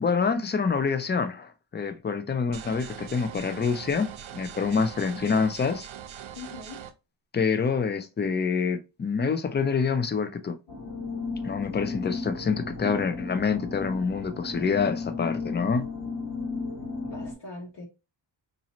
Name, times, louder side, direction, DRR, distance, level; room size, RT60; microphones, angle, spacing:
voice 1, 0.0-5.9 7.3-10.6 11.4-15.9, left 5 dB, 25° left, 0.4 m, -26 dB
sound 1, 2.5-6.9, right 9 dB, 85° right, 0.6 m, -42 dB
voice 2, 6.3-6.8 11.9-12.0 17.0-17.9, left 3 dB, 65° left, 1.1 m, -41 dB
sound 2, 10.7-17.3, left 4 dB, 50° left, 1.4 m, -34 dB
4.0 x 2.7 x 2.9 m
wide cardioid pair, 135°, 46 cm